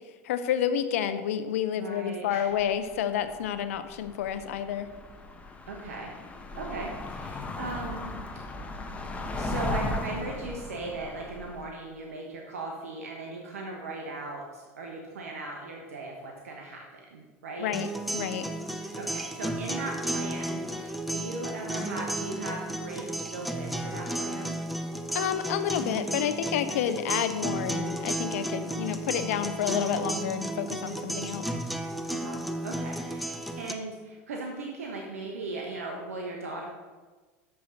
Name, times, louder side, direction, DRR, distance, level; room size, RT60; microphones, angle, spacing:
voice 1, 0.2-4.9 17.6-17.9 18.1-18.5 25.1-31.4, left 9 dB, 75° left, 10 dB, 0.6 m, -29 dB
voice 2, 1.8-2.5 5.7-6.1 6.5-8.1 8.3-8.4 9.3-17.7 19.0-24.6 32.1-36.7, right 2 dB, 85° right, 0 dB, 1.1 m, -38 dB
sound 1, 2.6-3.0 3.2-11.7, left 2 dB, 20° left, 1.0 m, -36 dB
sound 2, 17.7-33.7, right 1 dB, ahead, 0.7 m, -33 dB
7.1 x 6.1 x 6.3 m, 1.4 s
hypercardioid pair, 90°, 8 cm